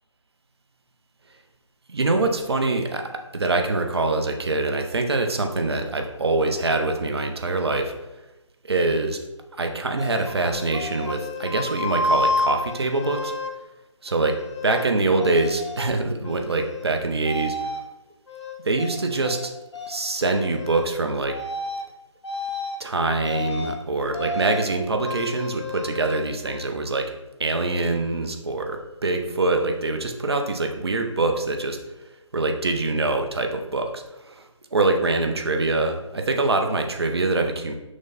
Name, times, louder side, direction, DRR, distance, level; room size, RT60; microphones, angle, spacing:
voice 1, 1.9-7.9 8.6-9.2 9.6-13.3 14.0-14.4 14.6-17.6 18.6-19.5 19.9-21.4 22.8-27.1 27.4-31.8 32.3-37.7, right 2 dB, 55° right, 5 dB, 0.6 m, -24 dB
sound 1, 10.0-13.5 14.1-14.9 15.2-15.9 16.2-16.9 17.3-17.8 18.3-19.5 19.7-20.0 20.3-20.9 21.3-21.9 22.2-22.8 23.2-23.8 24.1-24.7 25.0-26.7, left 2 dB, 60° left, 0.7 m, -30 dB
6.1 x 2.1 x 4.0 m, 1.0 s
figure-of-eight pair, 155°, 16 cm